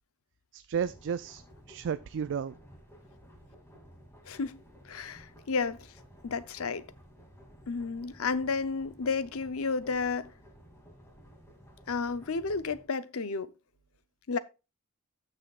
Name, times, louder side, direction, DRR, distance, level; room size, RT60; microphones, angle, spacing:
voice 1, 0.5-2.5, right 7 dB, 55° right, 0.3 m, -33 dB
sound 1, 0.7-12.8, equal, 10° left, 2.5 m, -55 dB
voice 2, 4.2-4.6 4.8-5.9 6.2-6.9 7.7-10.3 11.9-13.5 14.3-14.4, left 4 dB, 65° left, 0.7 m, -32 dB
14.0 x 6.2 x 2.4 m
head